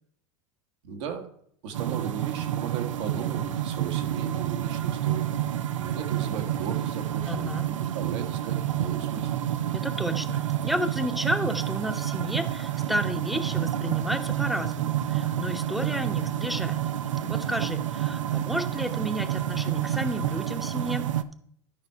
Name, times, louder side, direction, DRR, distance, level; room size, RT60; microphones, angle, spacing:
voice 1, 0.8-1.3 1.6-5.3 5.7-9.4, right 7 dB, 70° right, 5 dB, 1.7 m, -36 dB
sound 1, 1.7-21.2, right 11 dB, 85° right, 0.6 m, -29 dB
voice 2, 7.3-7.6 9.7-16.8 17.2-21.1, equal, ahead, 7 dB, 1.0 m, -32 dB
12.5 x 5.4 x 4.6 m, 0.66 s
hypercardioid pair, 100°, 16 cm